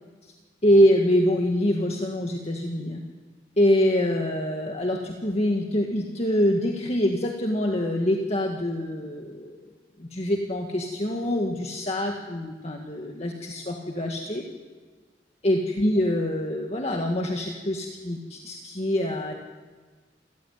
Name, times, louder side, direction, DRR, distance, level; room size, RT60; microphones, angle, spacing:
voice 1, 0.6-3.0 3.6-9.5 10.0-14.4 15.4-19.3, equal, 35° left, 1 dB, 1.9 m, -25 dB
28.0 x 15.0 x 9.5 m, 1.4 s
head